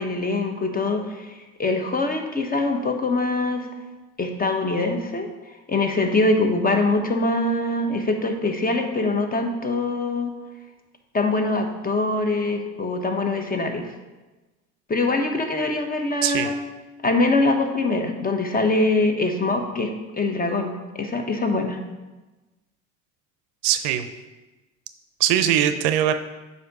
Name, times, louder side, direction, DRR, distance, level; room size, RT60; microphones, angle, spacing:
voice 1, 0.0-3.7 4.2-5.3 5.7-10.3 11.1-13.9 14.9-16.6 17.0-21.8, left 2 dB, 20° left, 5 dB, 0.9 m, -23 dB
voice 2, 23.6-24.1 25.2-26.1, right 10 dB, 60° right, 10 dB, 0.6 m, -21 dB
7.6 x 2.8 x 5.2 m, 1.1 s
hypercardioid pair, 70°, 43 cm